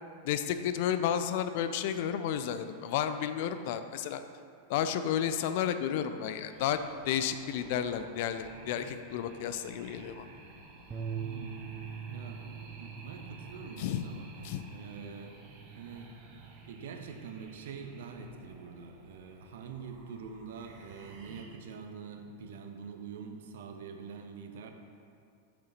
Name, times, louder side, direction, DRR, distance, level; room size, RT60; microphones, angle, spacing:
voice 1, 0.2-4.2 4.7-6.8 7.1-10.3 13.8-14.0 14.4-14.6, left 9 dB, 50° left, 10 dB, 0.4 m, -32 dB
sound 1, 6.5-21.4, right 2 dB, 40° right, 1.3 m, -53 dB
Bass guitar, 10.9-17.1, right 7 dB, 20° right, 0.8 m, -44 dB
voice 2, 11.1-11.6 12.1-12.4 12.8-14.3 14.7-15.4 15.8-16.1 16.7-24.7, right 5 dB, 60° right, 5 dB, 0.8 m, -45 dB
7.8 x 6.7 x 4.1 m, 2.5 s
figure-of-eight pair, 90°, 0 cm